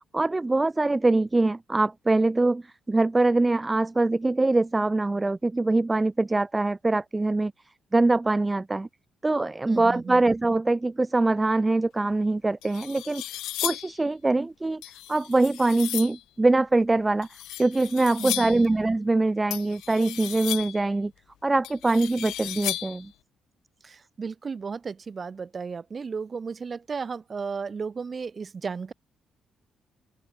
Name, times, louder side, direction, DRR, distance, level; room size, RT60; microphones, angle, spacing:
voice 1, 0.1-7.5 7.9-8.9 9.2-13.2 13.6-14.8 15.1-17.3 17.6-21.1 21.4-23.1, right 2 dB, 20° right, 1.3 m, -23 dB
voice 2, 9.7-10.2 18.2-18.7 23.8-28.9, right 5 dB, 40° right, 5.2 m, -34 dB
sound 1, 12.1-12.2 12.6-14.0 14.8-16.2 17.2-18.7 19.5-20.9 21.6-23.1, left 15 dB, 90° left, 1.1 m, -35 dB
open air
cardioid pair, 90°, 0 cm